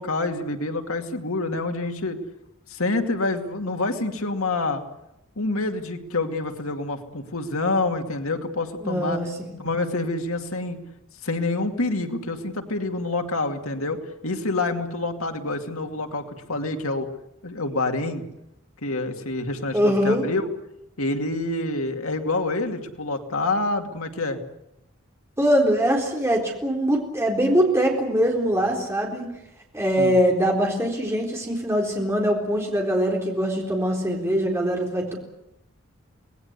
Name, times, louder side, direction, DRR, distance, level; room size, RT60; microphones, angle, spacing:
voice 1, 0.0-2.2 2.7-4.8 5.4-9.2 9.6-10.8 11.2-17.1 17.4-18.2 18.8-20.4 21.0-24.4 30.0-30.2, left 2 dB, 90° left, 5 dB, 2.4 m, -27 dB
voice 2, 8.8-9.6 19.7-20.2 25.4-29.3 29.7-35.1, equal, 15° right, 0 dB, 4.0 m, -22 dB
26.0 x 19.5 x 8.2 m, 0.85 s
head